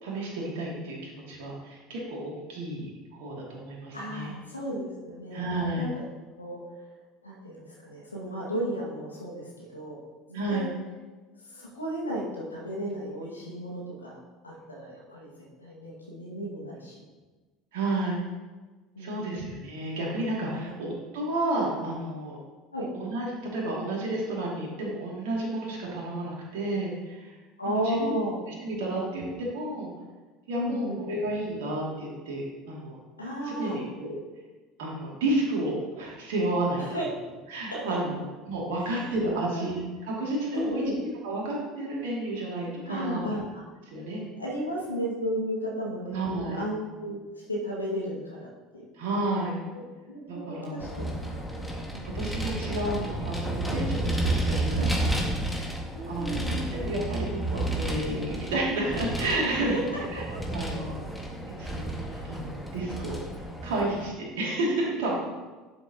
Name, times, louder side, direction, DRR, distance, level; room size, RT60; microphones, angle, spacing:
voice 1, 0.0-2.2 2.5-4.3 5.3-5.9 10.3-10.7 17.7-18.2 19.0-22.4 22.9-27.3 27.8-28.2 28.6-29.9 30.5-33.0 33.4-34.2 34.8-37.1 37.5-40.9 41.2-43.3 43.9-44.2 46.1-46.7 48.9-49.6 50.3-51.4 52.1-55.1 55.5-55.7 56.1-56.4 56.7-59.8 60.1-60.2 60.5-61.0 61.6-61.9 62.2-63.2 63.6-65.2, right 1 dB, 65° right, -3 dB, 2.6 m, -31 dB
voice 2, 3.9-5.4 5.8-6.1 6.4-6.6 7.2-10.0 10.3-10.7 11.5-14.2 14.4-15.3 15.6-17.0 19.0-19.3 20.5-20.8 22.7-22.9 27.6-28.4 30.6-31.0 33.2-33.8 36.9-37.0 37.7-38.0 38.8-39.0 39.3-39.7 40.5-41.0 42.9-43.6 44.4-48.9 49.2-49.4 49.7-49.8 50.1-51.0 51.5-51.7 51.9-52.1 54.8-54.9 55.9-56.7 59.4-60.4 62.0-62.3, equal, 90° left, -3 dB, 2.0 m, -34 dB
Vehicle, 50.8-64.0, right 1 dB, ahead, 1.9 m, -31 dB
11.5 x 7.1 x 3.0 m, 1.3 s
figure-of-eight pair, 65°, 0 cm